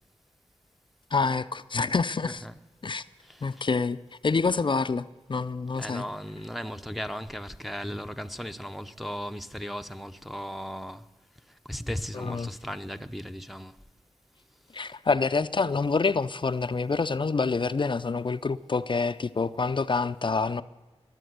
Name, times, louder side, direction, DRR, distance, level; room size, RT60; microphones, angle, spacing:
voice 1, 1.1-2.4 2.8-3.0 3.4-6.1 12.1-12.5 14.7-20.6, left 4 dB, 45° left, 0.5 m, -27 dB
voice 2, 5.8-11.0 11.7-13.7, equal, ahead, 0.7 m, -36 dB
20.5 x 7.6 x 7.9 m
cardioid pair, 45°, 12 cm